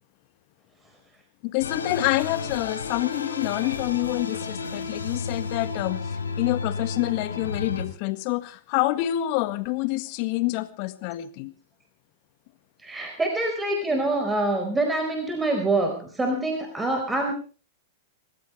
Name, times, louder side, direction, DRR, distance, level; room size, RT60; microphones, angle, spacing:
voice 1, 1.4-11.5, left 17 dB, 50° left, 12 dB, 1.8 m, -27 dB
sound 1, 1.6-7.9, left 4 dB, 85° left, 4.0 m, -32 dB
voice 2, 12.8-17.3, right 2 dB, 10° right, 4 dB, 4.6 m, -25 dB
28.0 x 15.0 x 3.3 m, 0.36 s
hypercardioid pair, 105°, 0 cm